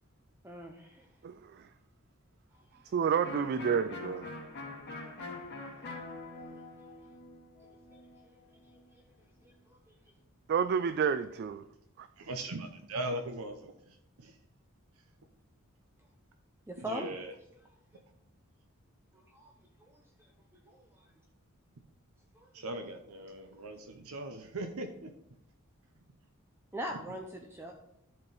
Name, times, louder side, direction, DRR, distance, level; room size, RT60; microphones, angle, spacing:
voice 1, 0.4-1.1 6.4-6.5 7.6-8.3 9.4-9.9 16.7-17.1 19.3-19.5 19.9-20.0 20.7-21.1 22.3-22.5 23.5-23.6 26.7-27.7, equal, 10° right, 2 dB, 0.6 m, -42 dB
voice 2, 2.9-4.3 10.5-11.6 12.0-12.1, right 7 dB, 45° right, 11 dB, 0.3 m, -29 dB
Electric guitar, 3.2-8.8, left 2 dB, 50° left, 2.2 m, -44 dB
voice 3, 12.2-14.3 16.9-17.3 22.5-25.1, right 1 dB, 80° right, 5 dB, 0.7 m, -39 dB
12.0 x 4.5 x 4.0 m, 0.80 s
head